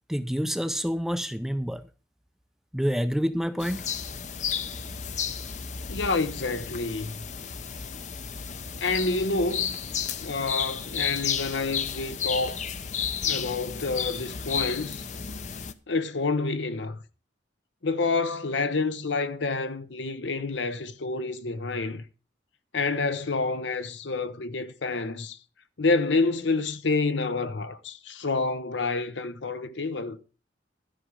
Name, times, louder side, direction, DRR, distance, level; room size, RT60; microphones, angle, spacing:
voice 1, 0.1-1.9 2.7-3.8, equal, ahead, 0.4 m, -28 dB
sound 1, 3.6-15.7, left 7 dB, 40° left, 0.6 m, -32 dB
voice 2, 5.9-7.3 8.8-9.7 10.2-12.6 13.2-15.0 15.9-17.0 17.8-22.0 22.7-25.4 25.8-30.2, left 3 dB, 80° left, 0.9 m, -28 dB
13.0 x 5.2 x 6.2 m
head